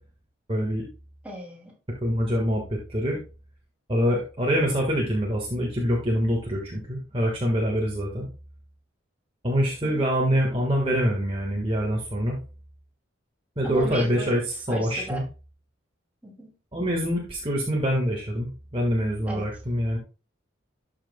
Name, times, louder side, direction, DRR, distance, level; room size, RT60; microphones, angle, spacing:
voice 1, 0.5-0.9 2.0-3.2 3.9-8.3 9.4-12.4 13.6-15.2 16.7-20.0, equal, 25° right, -2 dB, 1.5 m, -25 dB
voice 2, 1.2-1.7 9.8-10.1 13.6-14.4 14.7-15.2 16.2-16.5 19.3-19.4, right 1 dB, 5° right, -2 dB, 2.5 m, -35 dB
12.5 x 5.8 x 2.2 m, 0.33 s
head